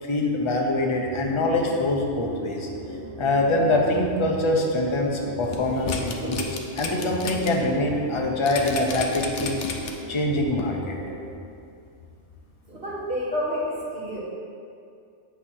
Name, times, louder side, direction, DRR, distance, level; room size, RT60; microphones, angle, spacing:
voice 1, 0.0-2.7 3.2-9.6 10.1-11.0, left 2 dB, 30° left, 0 dB, 0.7 m, -24 dB
sound 1, 1.0-11.4, right 1 dB, 70° right, 1.0 m, -37 dB
sound 2, 5.4-7.5 7.9-8.0 8.5-10.1 10.6-10.7, left 6 dB, 80° left, 1.0 m, -32 dB
voice 2, 12.7-14.2, equal, 55° right, -8 dB, 2.1 m, -29 dB
8.0 x 2.9 x 6.2 m, 2.4 s
omnidirectional pair, 1.2 m